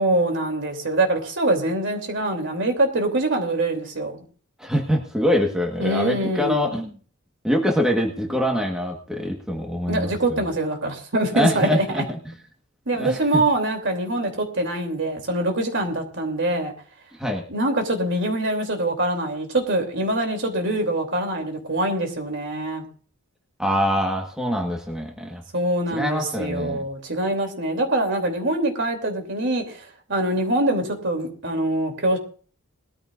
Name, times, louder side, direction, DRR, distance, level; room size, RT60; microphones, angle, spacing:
voice 1, 0.0-4.2 5.8-6.7 9.9-11.8 12.9-16.7 17.5-22.8 25.5-32.2, right 1 dB, 55° right, 4 dB, 3.1 m, -24 dB
voice 2, 4.6-7.0 7.4-10.4 11.3-12.2 13.0-13.4 17.2-17.4 23.6-25.4 25.9-26.8, equal, 5° right, 1 dB, 1.5 m, -24 dB
20.5 x 14.0 x 2.6 m, 0.42 s
head